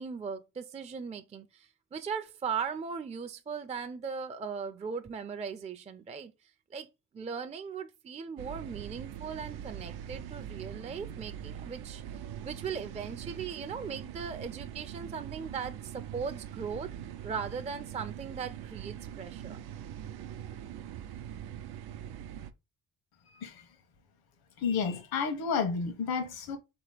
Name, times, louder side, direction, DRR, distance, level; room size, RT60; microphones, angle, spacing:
voice 1, 0.0-6.3 6.7-6.9 7.1-16.9 17.2-19.6, right 6 dB, 20° right, 0.4 m, -38 dB
sound 1, 8.4-22.5, right 10 dB, 90° right, 0.6 m, -42 dB
voice 2, 23.3-23.6 24.6-26.6, left 5 dB, 75° left, 1.1 m, -31 dB
3.7 x 3.0 x 4.8 m
cardioid pair, 95°, 37 cm